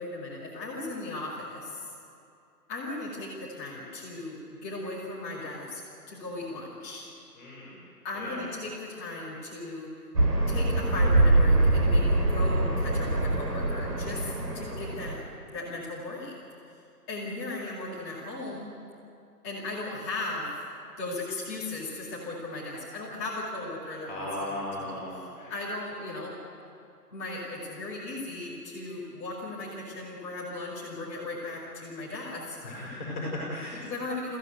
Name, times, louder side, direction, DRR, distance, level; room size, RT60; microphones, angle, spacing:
voice 1, 0.0-1.8 2.7-5.8 6.1-7.1 8.0-9.9 10.5-16.3 17.1-18.7 19.4-20.5 21.0-26.4 27.1-32.6 33.7-34.4, left 2 dB, 10° left, -8 dB, 2.3 m, -37 dB
voice 2, 7.4-7.8 8.2-8.4 24.1-25.5 32.6-33.8, left 1 dB, 30° left, -6 dB, 6.3 m, -36 dB
sound 1, 10.2-15.2, right 2 dB, 70° right, 4.1 m, -24 dB
21.5 x 15.5 x 9.2 m, 2.5 s
figure-of-eight pair, 170°, 50 cm